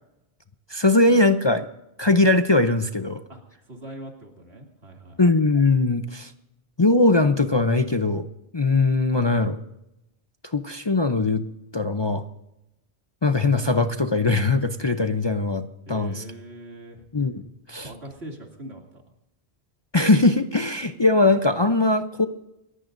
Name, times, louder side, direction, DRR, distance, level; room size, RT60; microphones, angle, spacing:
voice 1, 0.7-1.7 2.0-3.2 5.2-6.3 6.8-8.3 8.5-9.6 10.5-11.4 11.7-12.2 13.2-16.2 17.1-17.9 19.9-22.3, left 2 dB, 30° left, 7 dB, 0.6 m, -20 dB
voice 2, 3.3-5.2 15.8-17.0 17.8-19.0, right 1 dB, 75° right, 1 dB, 3.0 m, -41 dB
28.5 x 15.0 x 2.6 m, 0.90 s
omnidirectional pair, 1.1 m